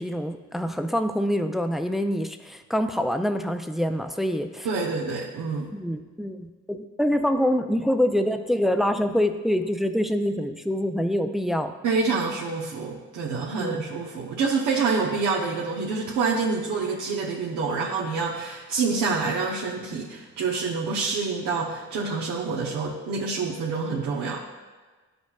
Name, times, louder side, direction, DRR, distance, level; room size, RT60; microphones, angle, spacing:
voice 1, 0.0-4.7 5.7-11.7 13.6-13.8, equal, ahead, 7 dB, 0.4 m, -25 dB
voice 2, 4.6-5.7 11.8-24.6, right 4 dB, 85° right, -5 dB, 0.9 m, -27 dB
11.0 x 5.2 x 2.4 m, 1.3 s
cardioid pair, 90°, 30 cm